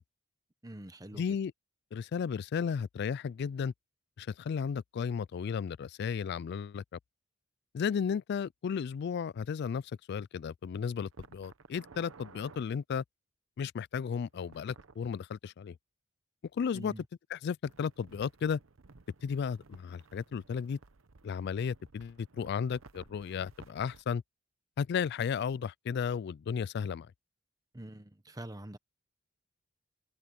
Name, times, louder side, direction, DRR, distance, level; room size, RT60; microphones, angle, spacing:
voice 1, 0.6-1.2 16.7-17.0 27.7-28.8, right 1 dB, 20° right, 1.1 m, -45 dB
voice 2, 1.1-1.5 1.9-3.7 4.2-6.8 7.7-13.0 13.6-15.8 16.5-16.9 17.3-18.6 19.2-20.8 21.2-24.2 24.8-27.1, left 6 dB, 55° left, 0.3 m, -34 dB
sound 1, 11.1-12.6 14.3-15.0 17.7-24.0, right 3 dB, 80° right, 0.9 m, -56 dB
open air
head